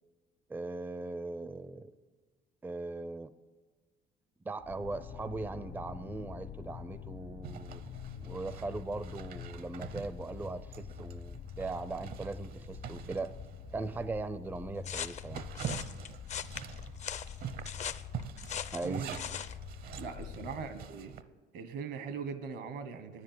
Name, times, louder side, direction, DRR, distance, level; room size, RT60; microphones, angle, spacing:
voice 1, 0.5-1.9 2.6-3.3 4.4-7.8 8.2-13.3 13.7-15.5 18.7-19.2, right 3 dB, 10° right, 14 dB, 0.4 m, -39 dB
sound 1, 4.6-20.9, left 7 dB, 65° left, 1.1 m, -46 dB
Zipper (clothing), 7.4-14.0 14.4-14.5 14.9-21.2, right 8 dB, 60° right, 0.7 m, -45 dB
sound 2, 14.8-19.6, left 8 dB, 45° left, 0.5 m, -40 dB
voice 2, 20.0-21.1 21.5-23.2, right 6 dB, 75° right, 10 dB, 1.3 m, -40 dB
10.0 x 9.9 x 7.7 m, 1.3 s
cardioid pair, 110°, 17 cm